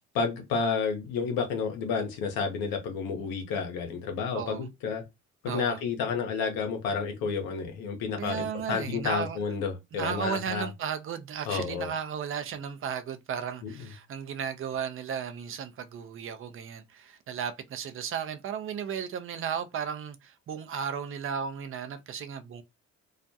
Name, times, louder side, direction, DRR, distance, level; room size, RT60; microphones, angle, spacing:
voice 1, 0.1-5.0 5.4-10.7 11.5-11.9 13.6-13.7, left 5 dB, 75° left, 0.8 m, -30 dB
voice 2, 4.3-4.7 5.5-5.8 8.2-9.4 9.9-22.6, right 7 dB, 35° right, 0.5 m, -35 dB
2.4 x 2.1 x 2.6 m
hypercardioid pair, 50°, 36 cm